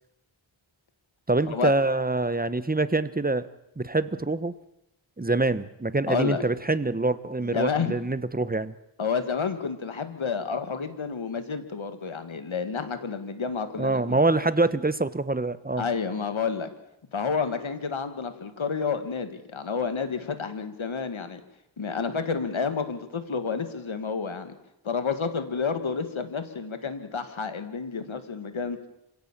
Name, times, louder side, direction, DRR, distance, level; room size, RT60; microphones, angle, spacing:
voice 1, 1.3-3.5 3.8-4.5 5.2-8.7 13.8-15.9, right 2 dB, 20° right, 14 dB, 1.1 m, -25 dB
voice 2, 6.1-6.4 7.4-8.0 9.0-14.2 15.8-16.7 17.1-21.4 21.8-24.5 24.8-28.8, left 5 dB, 80° left, 9 dB, 2.1 m, -30 dB
26.5 x 17.0 x 7.4 m, 0.87 s
wide cardioid pair, 70°, 47 cm